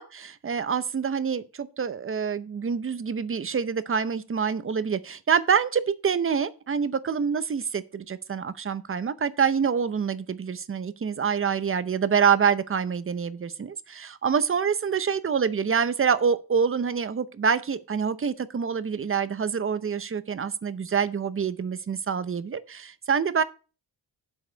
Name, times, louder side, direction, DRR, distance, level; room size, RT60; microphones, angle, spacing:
voice 1, 0.0-23.4, right 6 dB, 30° right, 0.7 m, -26 dB
7.9 x 4.7 x 6.6 m
cardioid pair, 105°, 42 cm